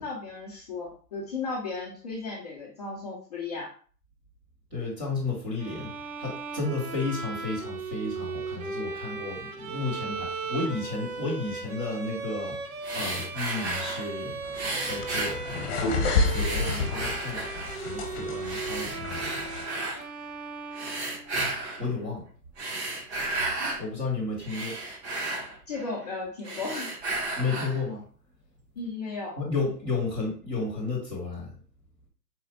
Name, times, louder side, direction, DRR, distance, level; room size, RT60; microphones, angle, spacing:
voice 1, 0.0-3.7 25.7-26.9 28.8-29.4, left 3 dB, 25° left, -4 dB, 0.6 m, -35 dB
voice 2, 4.7-5.9 6.2-14.4 14.8-15.8 16.2-17.5 17.8-19.4 21.8-22.2 23.8-24.8 27.4-28.0 29.4-31.5, left 3 dB, 10° right, -7 dB, 0.7 m, -32 dB
Bowed string instrument, 5.6-21.6, right 4 dB, 65° right, 0.9 m, -37 dB
sound 1, 12.8-14.1 14.5-16.0 16.3-17.9 18.4-20.0 20.7-21.9 22.4-23.8 24.2-26.1 26.4-27.8, right 2 dB, 45° right, 1.1 m, -33 dB
sound 2, 14.4-19.6, left 3 dB, 45° left, 1.0 m, -30 dB
4.2 x 2.3 x 4.0 m, 0.42 s
hypercardioid pair, 150°, 48 cm